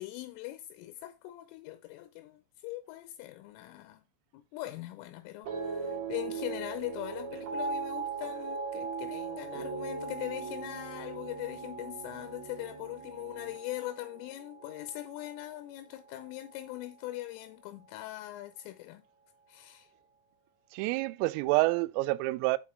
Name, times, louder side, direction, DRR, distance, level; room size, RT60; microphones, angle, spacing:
voice 1, 0.0-4.0 4.3-19.0 19.5-19.9, left 16 dB, 85° left, 3.2 m, -41 dB
sound 1, 5.4-15.8 16.1-16.7, right 4 dB, 55° right, 3.1 m, -39 dB
voice 2, 20.7-22.6, right 21 dB, 90° right, 3.2 m, -28 dB
8.4 x 4.7 x 3.0 m
omnidirectional pair, 5.9 m